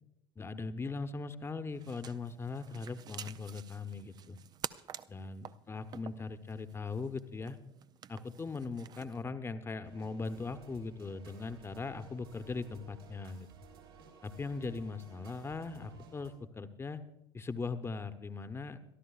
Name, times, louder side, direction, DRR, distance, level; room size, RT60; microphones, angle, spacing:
voice 1, 0.4-4.4 5.1-7.6 8.1-13.5 14.2-17.0 17.3-18.8, left 4 dB, 20° left, 10 dB, 1.0 m, -40 dB
sound 1, 1.7-9.2, right 9 dB, 30° right, 0.5 m, -49 dB
sound 2, 9.8-16.3, right 6 dB, 75° right, 2.8 m, -56 dB
23.5 x 13.0 x 2.4 m, 0.85 s
figure-of-eight pair, 65°, 13 cm